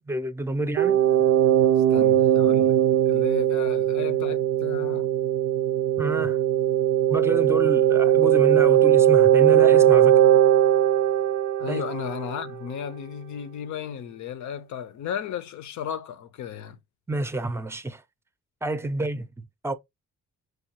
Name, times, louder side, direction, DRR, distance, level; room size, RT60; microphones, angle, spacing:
voice 1, 0.1-1.0 6.0-6.4 7.1-10.2 11.7-11.8 17.1-18.0 18.6-19.7, right 1 dB, 10° right, 0.5 m, -29 dB
sound 1, 0.8-12.4, right 11 dB, 60° right, 0.4 m, -19 dB
voice 2, 1.9-2.8 3.1-5.1 11.6-16.8, left 8 dB, 70° left, 0.6 m, -34 dB
4.7 x 2.4 x 2.8 m
cardioid pair, 90°, 30 cm